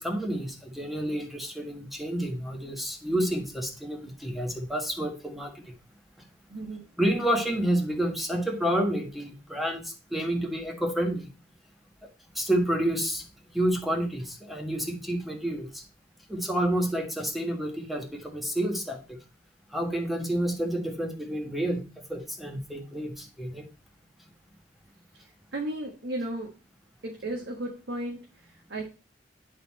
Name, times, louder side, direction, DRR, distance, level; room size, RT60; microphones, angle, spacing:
voice 1, 0.0-5.8 7.0-11.3 12.0-12.1 12.3-13.2 13.5-15.8 16.3-19.2 19.7-23.7, right 1 dB, ahead, 2 dB, 1.6 m, -29 dB
voice 2, 6.5-6.8 25.1-26.5 27.0-28.9, right 1 dB, 75° right, 0 dB, 1.5 m, -35 dB
10.5 x 4.3 x 4.2 m, 0.33 s
head